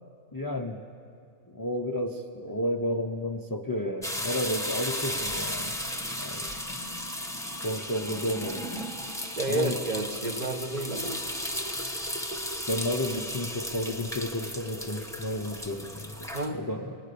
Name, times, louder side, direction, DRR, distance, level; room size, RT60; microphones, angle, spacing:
voice 1, 0.3-0.8 1.5-5.7 6.2-6.5 7.6-8.7 9.5-9.8 12.7-17.0, left 1 dB, 20° left, 3 dB, 0.7 m, -32 dB
sound 1, 4.0-16.5, left 1 dB, ahead, 1.1 m, -35 dB
voice 2, 9.4-11.2 16.3-16.6, right 2 dB, 30° right, 6 dB, 1.5 m, -31 dB
28.0 x 19.5 x 6.9 m, 2.4 s
omnidirectional pair, 1.5 m